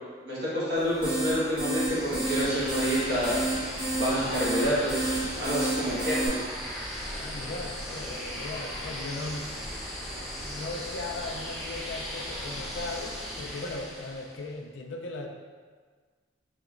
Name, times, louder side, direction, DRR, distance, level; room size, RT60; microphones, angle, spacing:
voice 1, 0.2-3.4 3.9-6.4, equal, 55° right, -10 dB, 1.4 m, -28 dB
sound 1, 0.7-6.3, right 2 dB, 25° right, 1.2 m, -31 dB
sound 2, 1.7-14.5, equal, ahead, 1.1 m, -37 dB
voice 2, 7.0-9.5 10.4-15.3, left 2 dB, 75° left, 2 dB, 0.4 m, -38 dB
4.2 x 2.9 x 2.4 m, 1.5 s
head